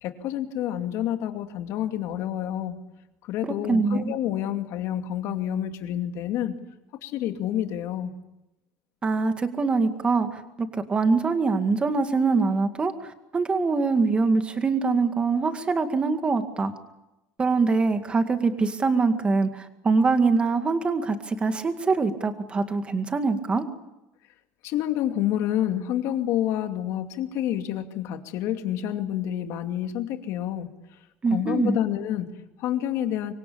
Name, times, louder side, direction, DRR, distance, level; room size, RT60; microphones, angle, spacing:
voice 1, 0.0-2.8 3.2-6.6 7.0-8.1 24.6-30.7 31.3-33.3, left 11 dB, 55° left, 7 dB, 2.5 m, -28 dB
voice 2, 3.7-4.1 9.0-12.9 13.3-16.7 17.4-23.6 31.2-31.8, right 4 dB, 20° right, 8 dB, 2.1 m, -23 dB
25.5 x 23.0 x 8.7 m, 0.95 s
cardioid pair, 160°, 6 cm